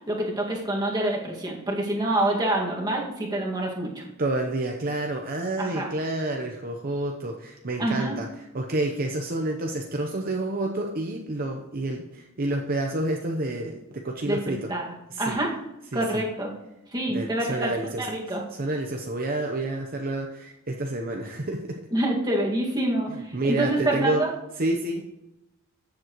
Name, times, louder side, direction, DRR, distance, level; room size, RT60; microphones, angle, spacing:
voice 1, 0.1-4.0 5.6-5.9 7.8-8.2 14.3-15.5 15.9-16.5 16.9-17.7 18.0-18.4 21.9-24.3, right 1 dB, 20° right, -2 dB, 1.9 m, -27 dB
voice 2, 4.2-14.7 15.1-15.4 15.9-16.0 17.1-18.1 18.5-21.9 23.3-24.2 24.6-25.2, right 2 dB, 45° right, 2 dB, 0.8 m, -29 dB
14.0 x 7.6 x 3.1 m, 0.92 s
head